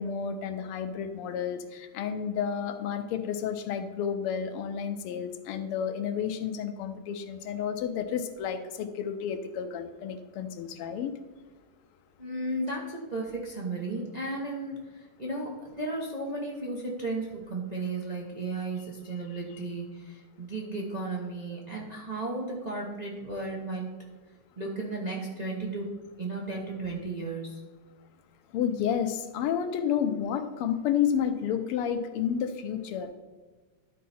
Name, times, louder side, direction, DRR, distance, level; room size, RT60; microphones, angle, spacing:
voice 1, 0.0-11.1 17.8-17.9 19.1-19.6 28.5-33.1, left 8 dB, 90° left, 8 dB, 1.6 m, -31 dB
voice 2, 12.2-23.9 24.6-25.9 26.2-27.7, right 2 dB, 35° right, -3 dB, 0.7 m, -34 dB
12.0 x 4.7 x 4.2 m, 1.3 s
omnidirectional pair, 2.4 m